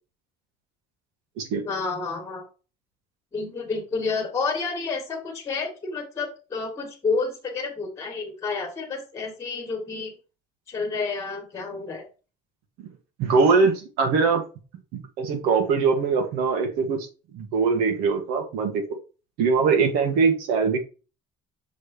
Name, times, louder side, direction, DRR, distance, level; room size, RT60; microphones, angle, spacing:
voice 1, 1.6-2.4 3.3-10.1 10.7-12.1, left 4 dB, 20° left, 2 dB, 1.7 m, -30 dB
voice 2, 13.2-14.4 14.9-17.1 17.3-19.0 19.4-20.8, right 5 dB, 80° right, 4 dB, 1.9 m, -22 dB
6.2 x 3.5 x 4.4 m, 0.33 s
cardioid pair, 175°, 16 cm